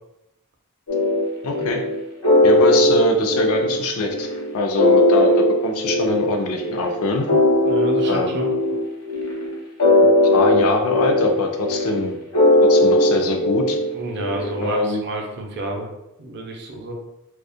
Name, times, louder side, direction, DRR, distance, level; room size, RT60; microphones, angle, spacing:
sound 1, 0.9-14.7, left 1 dB, 90° left, 0.8 m, -19 dB
voice 1, 1.4-1.8 2.4-4.3 4.5-7.3 8.0-8.4 10.3-12.2 12.6-13.8 14.6-15.0, left 2 dB, 65° left, 3 dB, 0.4 m, -23 dB
voice 2, 7.6-8.5 13.9-15.9 16.2-16.9, right 1 dB, 50° right, 1 dB, 0.5 m, -30 dB
2.3 x 2.0 x 2.6 m, 0.87 s
head